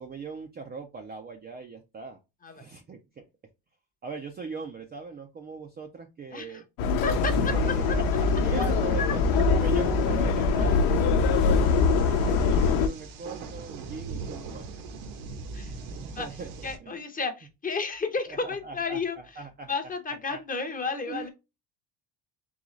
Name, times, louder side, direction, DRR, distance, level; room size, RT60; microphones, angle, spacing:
voice 1, 0.0-2.2 2.5-3.2 4.0-6.7 7.4-9.2 9.5-14.7 16.0-16.5 16.8-17.0 18.3-19.7 20.3-20.4 21.1-21.3, right 4 dB, 20° right, 0.4 m, -40 dB
Subway metro underground, 6.8-12.9, left 4 dB, 85° left, 0.9 m, -23 dB
voice 2, 7.0-7.5 7.9-8.0 9.0-9.1 15.5-15.7 16.2-16.3 16.6-19.2 19.7-21.3, left 4 dB, 20° left, 0.7 m, -32 dB
sound 1, 7.0-16.8, right 4 dB, 80° right, 1.2 m, -41 dB
3.9 x 3.5 x 3.1 m
cardioid pair, 150°, 47 cm